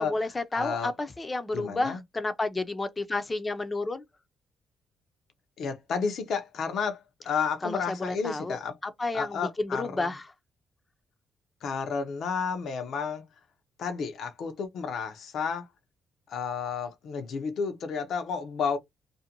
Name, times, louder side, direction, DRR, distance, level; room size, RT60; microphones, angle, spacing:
voice 1, 0.0-4.0 7.6-10.3, left 2 dB, 25° left, 0.5 m, -31 dB
voice 2, 0.5-0.9 1.5-2.0 5.6-8.8 9.1-10.1 11.6-13.2 13.8-15.7 16.3-18.8, left 6 dB, 65° left, 0.6 m, -31 dB
2.6 x 2.1 x 2.8 m
cardioid pair, 90°, 0 cm